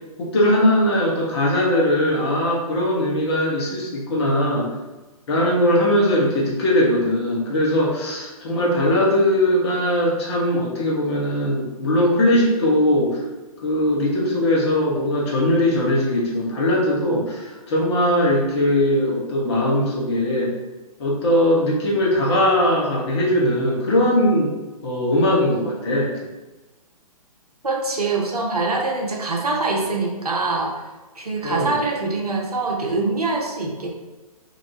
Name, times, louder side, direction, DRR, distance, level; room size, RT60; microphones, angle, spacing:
voice 1, 0.2-4.7 5.3-13.2 13.6-20.5 21.0-24.5 24.8-26.3 31.4-31.7, left 1 dB, 45° left, -3 dB, 0.8 m, -20 dB
voice 2, 27.6-30.8 31.2-33.9, right 3 dB, 80° right, -1 dB, 0.7 m, -24 dB
2.6 x 2.1 x 2.8 m, 1.1 s
figure-of-eight pair, 125°, 19 cm